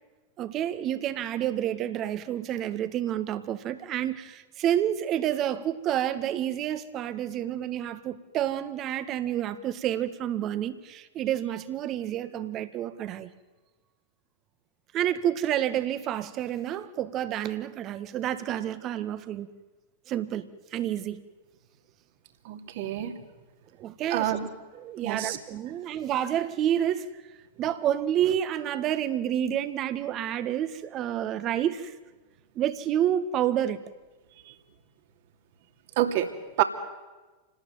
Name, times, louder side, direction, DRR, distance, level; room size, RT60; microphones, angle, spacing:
voice 1, 0.4-13.3 14.9-19.5 20.1-21.2 23.8-24.4 24.7-27.1 27.6-31.9 32.6-33.8, right 11 dB, 35° right, 12 dB, 1.9 m, -29 dB
voice 2, 22.4-23.1 24.1-24.5 25.0-25.4 36.0-36.3 36.6-36.7, right 12 dB, 50° right, 6 dB, 2.9 m, -27 dB
28.5 x 19.5 x 9.4 m, 1.2 s
figure-of-eight pair, 90°, 0 cm